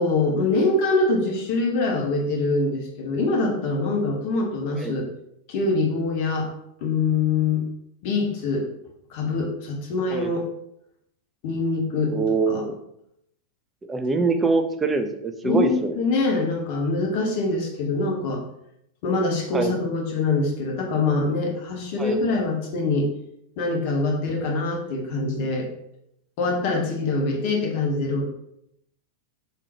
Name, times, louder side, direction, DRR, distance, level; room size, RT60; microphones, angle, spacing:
voice 1, 0.0-5.1 5.5-6.5 6.8-7.6 8.0-8.7 9.1-10.5 11.4-12.2 12.5-12.6 14.1-14.2 15.4-18.4 19.0-23.1 23.6-25.7 26.4-28.3, left 3 dB, 45° left, 1 dB, 0.9 m, -24 dB
voice 2, 12.1-12.8 13.9-16.0 19.5-19.7 22.0-22.2, right 4 dB, 15° right, 6 dB, 0.4 m, -24 dB
3.6 x 3.3 x 2.8 m, 0.76 s
figure-of-eight pair, 90°, 0 cm